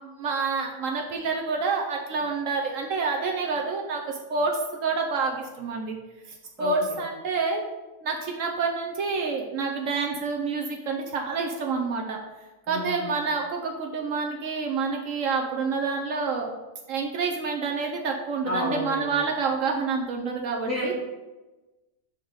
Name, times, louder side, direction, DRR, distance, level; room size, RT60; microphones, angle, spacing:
voice 1, 0.2-6.0 6.6-7.6 8.0-12.2 12.7-16.5 16.9-20.9, right 4 dB, 70° right, 1 dB, 1.1 m, -28 dB
voice 2, 6.6-7.0 12.7-13.1 18.4-19.2 20.6-20.9, equal, 10° left, -6 dB, 1.9 m, -31 dB
5.7 x 4.6 x 5.0 m, 1.1 s
omnidirectional pair, 1.4 m